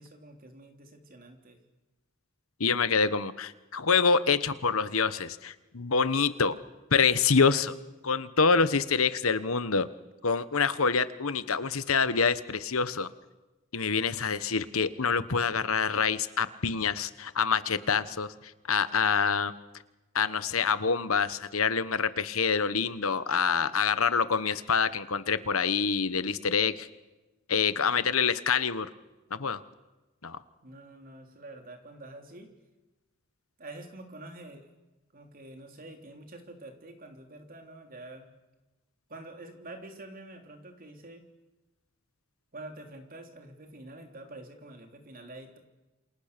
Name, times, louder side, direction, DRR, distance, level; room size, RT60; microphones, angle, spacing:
voice 1, 0.0-1.6 30.6-32.5 33.6-34.7 35.1-38.3 39.1-41.2 42.5-45.6, right 2 dB, 45° right, 4 dB, 3.3 m, -47 dB
voice 2, 2.6-6.6 6.9-7.7 8.0-9.9 10.2-13.1 13.7-18.3 18.7-19.5 20.1-26.9 27.5-28.9 29.3-29.6 30.2-30.4, left 5 dB, 85° left, 13 dB, 1.2 m, -26 dB
28.0 x 26.0 x 6.8 m, 1.1 s
head